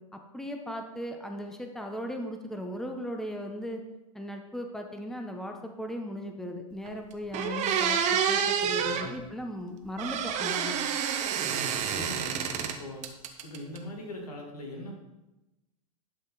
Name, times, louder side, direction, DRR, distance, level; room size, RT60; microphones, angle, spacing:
voice 1, 0.1-3.8 4.1-8.0 8.3-10.8, equal, ahead, 4 dB, 1.0 m, -37 dB
sound 1, 6.8-6.9 7.3-9.1 10.0-12.8 13.0-13.8, right 7 dB, 40° right, 1.1 m, -28 dB
voice 2, 8.9-9.2 11.4-13.0 13.4-15.0, left 1 dB, 85° left, 1 dB, 2.2 m, -41 dB
11.0 x 5.4 x 4.1 m, 1.0 s
hypercardioid pair, 105°, 19 cm